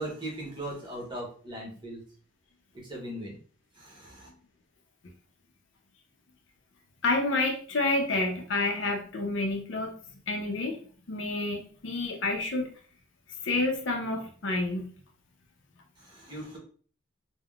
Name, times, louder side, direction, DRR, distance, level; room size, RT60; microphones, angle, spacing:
voice 1, 0.0-2.0 2.8-3.4 3.7-4.3 16.0-16.6, right 1 dB, 25° right, -2 dB, 0.9 m, -39 dB
voice 2, 7.0-9.9 10.3-10.8 11.1-12.7 13.4-14.9, left 2 dB, 65° left, 3 dB, 0.5 m, -29 dB
3.5 x 2.1 x 2.3 m, 0.44 s
head